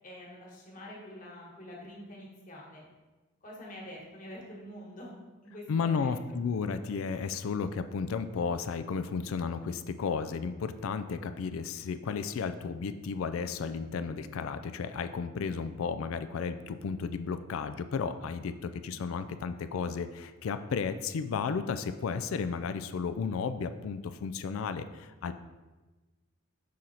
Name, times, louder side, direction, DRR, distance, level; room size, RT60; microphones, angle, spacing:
voice 1, 0.0-2.9 3.4-6.2, equal, 40° left, -3 dB, 1.5 m, -46 dB
voice 2, 5.7-25.3, left 5 dB, 80° left, 10 dB, 0.4 m, -33 dB
6.3 x 3.9 x 4.2 m, 1.2 s
head